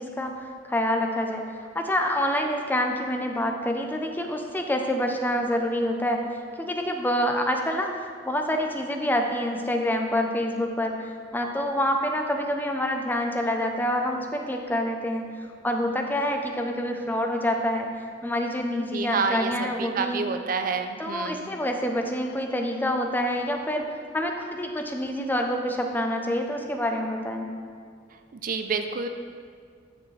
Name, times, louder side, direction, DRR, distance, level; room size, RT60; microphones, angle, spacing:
voice 1, 0.0-6.2 6.6-15.3 15.6-17.9 18.2-20.2 21.0-23.8 24.1-27.5, left 1 dB, 10° left, 3 dB, 0.6 m, -27 dB
voice 2, 18.9-19.5 19.8-21.5 28.3-29.1, right 5 dB, 50° right, 7 dB, 0.4 m, -28 dB
9.8 x 6.4 x 3.2 m, 2.1 s
head